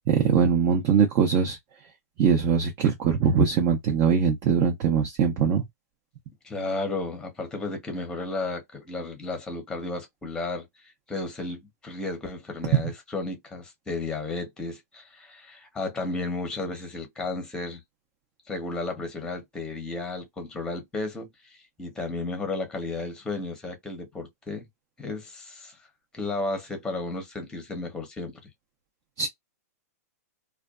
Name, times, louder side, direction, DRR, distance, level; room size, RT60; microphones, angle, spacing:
voice 1, 0.1-1.6 2.2-5.6 29.2-29.3, right 6 dB, 35° right, 0.6 m, -22 dB
voice 2, 6.4-17.8 18.5-24.7 25.0-25.8 26.1-28.4, left 3 dB, 10° left, 0.8 m, -33 dB
2.5 x 2.3 x 2.3 m
hypercardioid pair, 145°, 9 cm